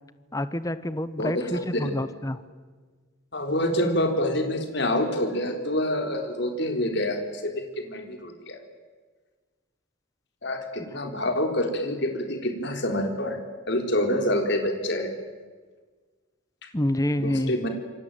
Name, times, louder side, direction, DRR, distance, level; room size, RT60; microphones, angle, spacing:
voice 1, 0.3-2.4 16.7-17.5, left 1 dB, 15° left, 13 dB, 1.0 m, -27 dB
voice 2, 3.3-8.6 10.4-13.4 13.7-15.1 17.2-17.7, left 1 dB, 55° left, 5 dB, 4.0 m, -27 dB
27.5 x 23.0 x 9.3 m, 1.4 s
head